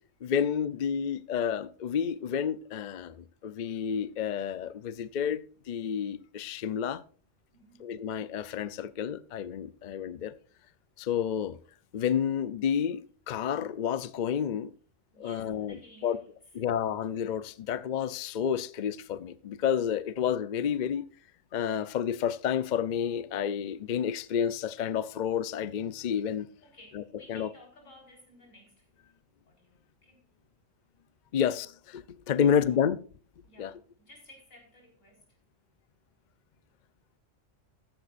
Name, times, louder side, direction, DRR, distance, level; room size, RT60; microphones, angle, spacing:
voice 1, 0.2-7.0 7.8-10.4 11.0-11.6 11.9-14.7 15.2-16.2 16.5-21.0 21.5-26.5 26.9-27.0 27.3-27.5 31.3-33.0 33.6-33.7, left 8 dB, 55° left, 0.5 m, -30 dB
voice 2, 7.5-8.0 15.1-16.7 26.6-28.9 29.5-30.3 32.4-32.8 33.4-35.4, left 1 dB, 80° left, 4.5 m, -56 dB
14.0 x 10.5 x 2.5 m
omnidirectional pair, 1.3 m